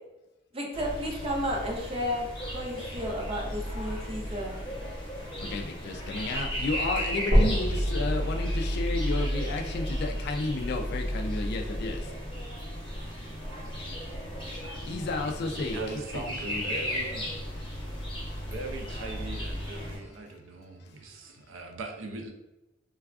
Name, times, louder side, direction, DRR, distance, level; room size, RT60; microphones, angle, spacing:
voice 1, 0.5-4.6, equal, 30° right, 0 dB, 0.6 m, -33 dB
sound 1, 0.7-20.0, equal, 25° left, 0.7 m, -34 dB
voice 2, 5.5-12.0 14.8-15.8 16.1-16.8, left 3 dB, 55° left, 4 dB, 0.3 m, -32 dB
sound 2, 7.3-11.3 11.9-12.0 12.5-12.6 13.0-13.1 13.9-14.0, equal, 65° right, 1.2 m, -29 dB
voice 3, 15.7-17.3 18.5-22.3, right 3 dB, 80° right, 4 dB, 0.5 m, -40 dB
3.3 x 2.3 x 2.3 m, 1.0 s
head